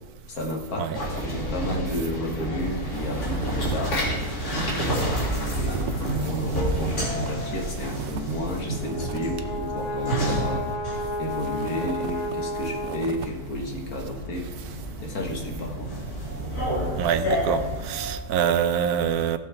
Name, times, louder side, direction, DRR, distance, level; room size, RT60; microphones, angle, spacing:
voice 1, 0.3-4.0 4.8-10.6 11.2-14.5 15.0-16.0, left 1 dB, 70° left, 1 dB, 2.1 m, -32 dB
sound 1, 0.9-18.1, right 1 dB, 90° left, 3.2 m, -30 dB
sound 2, 2.7-9.4 9.8-9.9 10.8-13.4, right 6 dB, 60° right, 0.9 m, -39 dB
Brass instrument, 8.5-13.5, left 1 dB, 40° left, 0.9 m, -32 dB
voice 2, 17.0-19.4, right 8 dB, 80° right, 10 dB, 1.2 m, -25 dB
17.0 x 7.2 x 3.4 m, 1.4 s
omnidirectional pair, 1.6 m